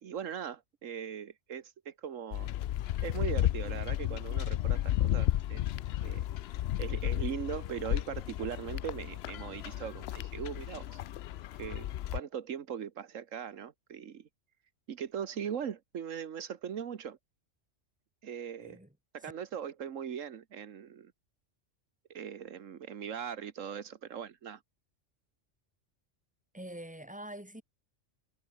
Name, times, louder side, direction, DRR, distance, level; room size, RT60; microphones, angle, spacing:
voice 1, 0.0-2.5 3.0-5.6 6.0-6.2 6.8-11.0 11.6-11.9 12.1-14.3 14.9-17.2 18.2-18.8 19.1-21.1 22.1-24.6, right 8 dB, 80° right, 1.5 m, -40 dB
sound 1, 2.3-12.2, left 13 dB, 65° left, 0.7 m, -33 dB
voice 2, 26.5-27.6, right 1 dB, 5° right, 3.1 m, -44 dB
omnidirectional pair, 1.3 m